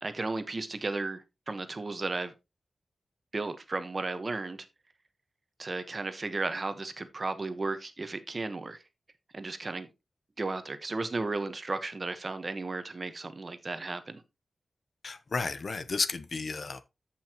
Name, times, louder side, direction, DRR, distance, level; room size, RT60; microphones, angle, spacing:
voice 1, 0.0-2.3 3.3-4.7 5.6-8.8 9.3-9.9 10.4-14.2, right 3 dB, 40° right, 1.2 m, -34 dB
voice 2, 15.0-16.8, left 4 dB, 55° left, 0.8 m, -32 dB
14.0 x 5.6 x 3.0 m
wide cardioid pair, 110°, 0 cm